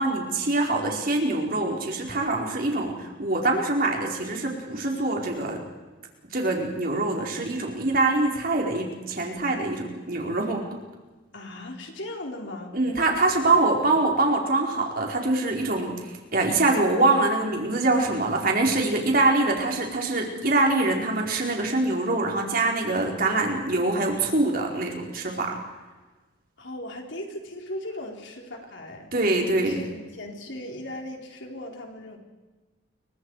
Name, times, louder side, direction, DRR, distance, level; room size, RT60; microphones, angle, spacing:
voice 1, 0.0-5.6 6.3-10.6 12.7-25.5 29.1-29.8, right 2 dB, 45° right, 0 dB, 4.5 m, -24 dB
voice 2, 11.3-12.7 13.3-14.0 26.6-29.1 29.5-32.2, left 1 dB, 65° left, 1 dB, 4.4 m, -38 dB
30.0 x 24.0 x 4.9 m, 1.2 s
head